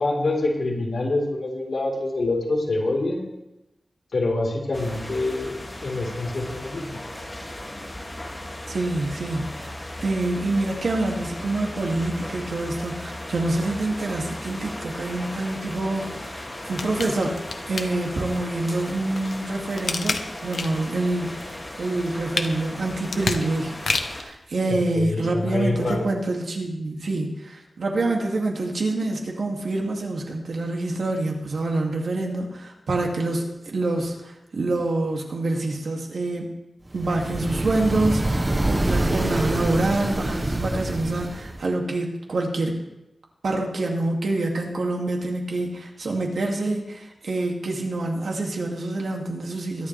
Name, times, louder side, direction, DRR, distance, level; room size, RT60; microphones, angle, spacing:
voice 1, 0.0-3.3 4.1-7.0 24.7-26.1, left 2 dB, 60° left, -3 dB, 4.1 m, -26 dB
sound 1, 4.7-24.2, left 1 dB, 20° left, 2.4 m, -36 dB
voice 2, 8.7-9.7 10.0-36.5 36.9-42.8 43.4-49.9, right 2 dB, 75° right, 0 dB, 2.5 m, -26 dB
sound 2, 16.6-18.4 18.9-20.9 21.3-24.3 24.8-24.9, left 4 dB, 80° left, 1.1 m, -30 dB
sound 3, 37.0-41.7, right 1 dB, 20° right, 0.8 m, -26 dB
23.0 x 11.5 x 3.4 m, 0.94 s
wide cardioid pair, 120°, 0 cm